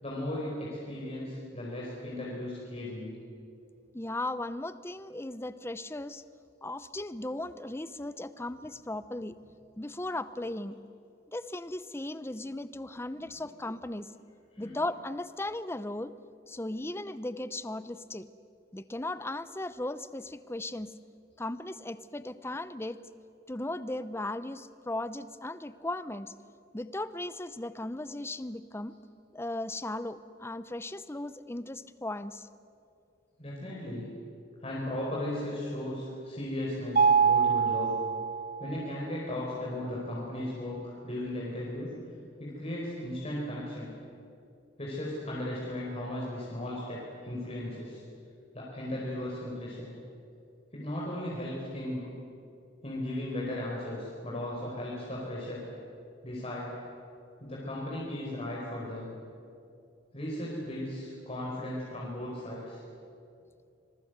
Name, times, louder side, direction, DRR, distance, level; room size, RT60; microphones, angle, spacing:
voice 1, 0.0-3.1 13.1-13.5 14.6-14.8 33.4-34.1 34.6-37.9 38.6-41.9 42.4-43.9 44.8-48.0 48.5-49.9 50.7-52.1 52.8-55.6 56.2-56.7 57.4-59.1 60.1-62.8, left 1 dB, 30° left, -5 dB, 4.7 m, -36 dB
voice 2, 3.9-6.2 6.6-9.4 9.8-10.7 11.3-14.1 14.6-16.1 16.5-18.3 18.7-20.9 21.4-23.0 23.5-26.3 26.7-28.9 29.3-32.5, left 1 dB, 15° left, 14 dB, 0.7 m, -37 dB
Mallet percussion, 37.0-38.9, right 6 dB, 45° right, 0.7 m, -25 dB
26.0 x 22.0 x 8.1 m, 2.5 s
head